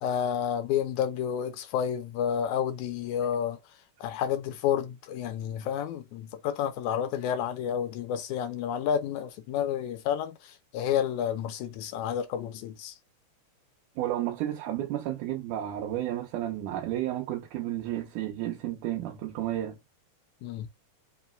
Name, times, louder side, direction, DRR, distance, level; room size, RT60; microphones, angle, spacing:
voice 1, 0.0-3.6 4.0-13.0 20.4-20.7, left 9 dB, 80° left, 2.1 m, -30 dB
voice 2, 14.0-19.8, right 13 dB, 80° right, 2.4 m, -32 dB
5.4 x 3.1 x 2.3 m
omnidirectional pair, 3.6 m